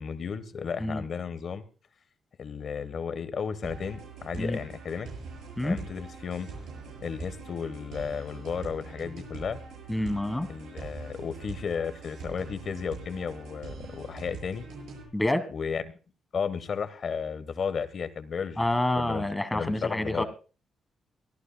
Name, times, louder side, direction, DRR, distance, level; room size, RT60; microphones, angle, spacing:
voice 1, 0.0-1.6 2.4-5.1 5.6-6.5 7.0-9.6 10.5-14.6 15.5-15.8 16.3-18.7 19.0-19.2 19.5-20.2, left 6 dB, 45° left, 14 dB, 1.2 m, -33 dB
sound 1, 3.6-15.0, right 4 dB, 85° right, 7.6 m, -43 dB
voice 2, 9.9-10.5 15.1-15.5 18.6-20.2, left 1 dB, 5° left, 11 dB, 1.4 m, -27 dB
23.5 x 14.5 x 2.2 m, 0.35 s
cardioid pair, 155°, 0 cm